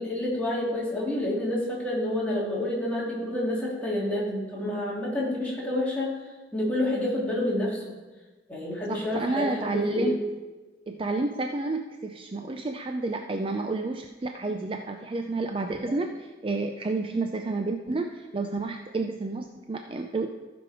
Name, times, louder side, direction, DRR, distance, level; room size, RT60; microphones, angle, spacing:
voice 1, 0.0-6.2 6.5-7.9 8.5-10.2 15.9-16.0, left 1 dB, 10° left, -6 dB, 2.7 m, -28 dB
voice 2, 8.9-10.2 10.9-20.3, right 3 dB, 30° right, 5 dB, 0.4 m, -30 dB
15.0 x 5.2 x 4.9 m, 1.2 s
head